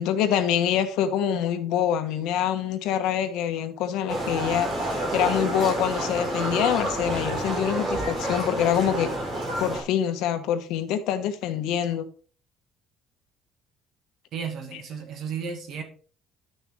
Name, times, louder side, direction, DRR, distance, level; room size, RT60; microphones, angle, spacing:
voice 1, 0.0-9.1 9.6-12.1, left 9 dB, 80° left, 8 dB, 1.3 m, -25 dB
Livestock farm animals working animals, 4.1-9.8, right 1 dB, 30° right, 4.6 m, -29 dB
voice 2, 14.3-15.8, right 6 dB, 50° right, 5 dB, 2.2 m, -33 dB
11.0 x 6.9 x 3.7 m, 0.42 s
cardioid pair, 165°, 0 cm